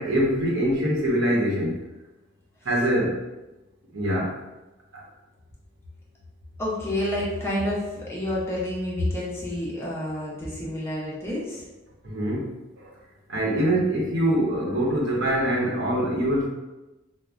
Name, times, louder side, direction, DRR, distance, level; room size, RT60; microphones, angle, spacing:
voice 1, 0.0-1.8 2.6-3.3 3.9-4.3 4.9-5.0 12.0-12.9 13.3-16.5, right 1 dB, 65° right, -3 dB, 0.9 m, -24 dB
voice 2, 6.6-11.6, left 1 dB, 15° left, -6 dB, 0.6 m, -29 dB
4.7 x 2.1 x 2.4 m, 1.0 s
head